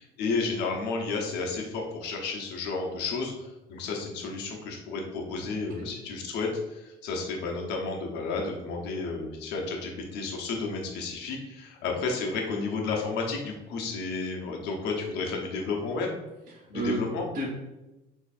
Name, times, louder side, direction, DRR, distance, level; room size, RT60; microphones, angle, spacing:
voice 1, 0.0-16.2 16.7-17.2, left 4 dB, 90° left, 0 dB, 1.0 m, -32 dB
voice 2, 5.3-5.9 16.5-17.5, right 1 dB, 55° right, -5 dB, 1.4 m, -34 dB
7.0 x 3.0 x 2.5 m, 1.0 s
cardioid pair, 110°, 17 cm